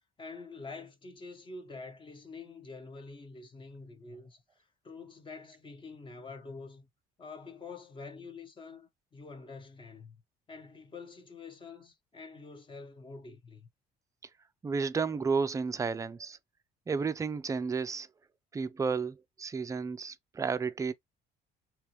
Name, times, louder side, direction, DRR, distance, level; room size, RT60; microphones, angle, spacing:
voice 1, 0.2-6.9 7.2-10.2 10.5-13.7, left 4 dB, 30° left, 1.1 m, -47 dB
voice 2, 14.6-16.4 16.9-18.1 18.5-20.9, right 5 dB, 20° right, 0.4 m, -32 dB
3.4 x 3.0 x 3.0 m
cardioid pair, 110°, 17 cm